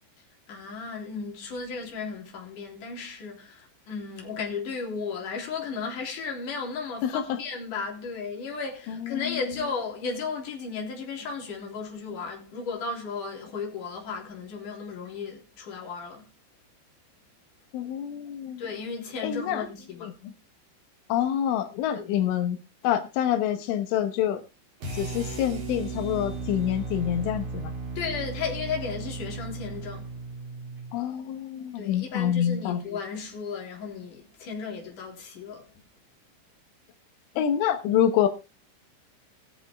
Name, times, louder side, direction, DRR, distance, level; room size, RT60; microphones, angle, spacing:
voice 1, 0.5-16.2 18.6-20.1 21.9-22.2 28.0-30.1 31.8-35.7, left 5 dB, 45° left, 4.6 m, -35 dB
voice 2, 7.0-7.4 8.9-9.4 17.7-18.6 19.2-19.6 20.0-20.3 21.1-22.6 22.8-24.4 24.9-27.7 30.9-32.8 37.4-38.3, left 10 dB, 90° left, 3.7 m, -27 dB
sound 1, 24.8-31.0, right 3 dB, 50° right, 5.5 m, -35 dB
21.0 x 7.2 x 3.5 m
omnidirectional pair, 5.4 m